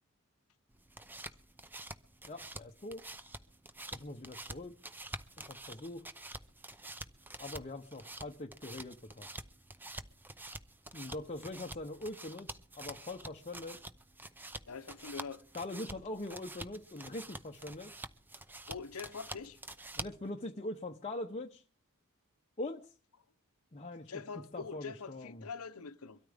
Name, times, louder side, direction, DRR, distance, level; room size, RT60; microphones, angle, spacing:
sound 1, 0.7-20.3, right 2 dB, 10° right, 0.6 m, -48 dB
voice 1, 2.3-3.0 3.9-4.7 5.4-6.0 7.4-9.3 10.9-13.8 15.5-17.9 20.0-21.6 22.6-22.9 23.7-24.1 24.5-25.5, left 2 dB, 30° left, 0.8 m, -42 dB
voice 2, 14.7-15.4 18.7-19.6 24.1-26.2, left 5 dB, 80° left, 0.8 m, -44 dB
23.5 x 13.0 x 3.5 m
head